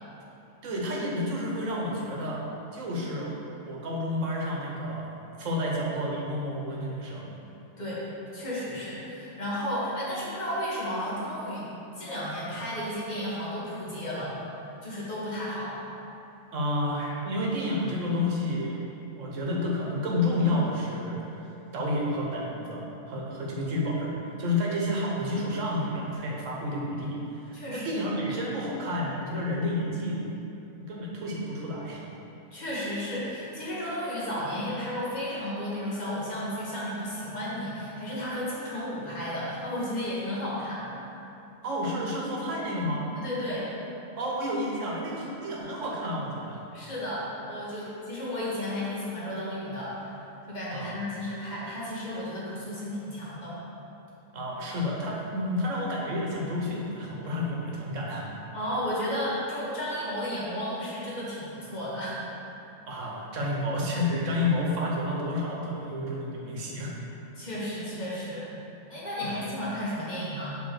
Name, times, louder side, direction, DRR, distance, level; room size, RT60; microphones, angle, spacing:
voice 1, 0.6-2.4 2.7-3.4 3.7-5.1 5.4-7.3 16.5-18.8 19.2-30.2 30.8-32.0 41.6-43.0 44.2-46.6 47.8-47.9 50.7-51.0 54.3-58.3 62.9-66.9 69.2-69.3, left 1 dB, 75° right, -3 dB, 1.3 m, -30 dB
voice 2, 8.3-11.7 11.9-14.4 14.8-15.8 27.5-28.0 32.5-40.9 43.1-43.7 46.7-50.2 50.5-53.6 58.5-62.2 67.4-68.5 68.9-70.6, equal, 35° left, -8 dB, 1.4 m, -33 dB
5.1 x 3.7 x 5.8 m, 2.9 s
omnidirectional pair, 1.4 m